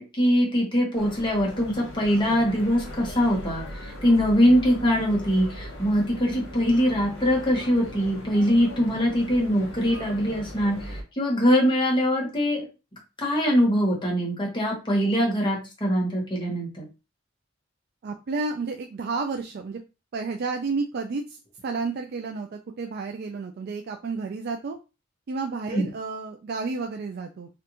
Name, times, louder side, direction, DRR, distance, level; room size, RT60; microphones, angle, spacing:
voice 1, 0.0-12.7 13.2-16.9 25.7-25.9, equal, 25° left, -2 dB, 1.2 m, -23 dB
sound 1, 0.9-11.0, equal, 75° left, 1.2 m, -39 dB
voice 2, 18.0-19.8 20.1-21.4 21.6-24.8 25.3-27.5, right 4 dB, 55° right, 4 dB, 0.4 m, -31 dB
3.3 x 2.5 x 2.9 m, 0.29 s
head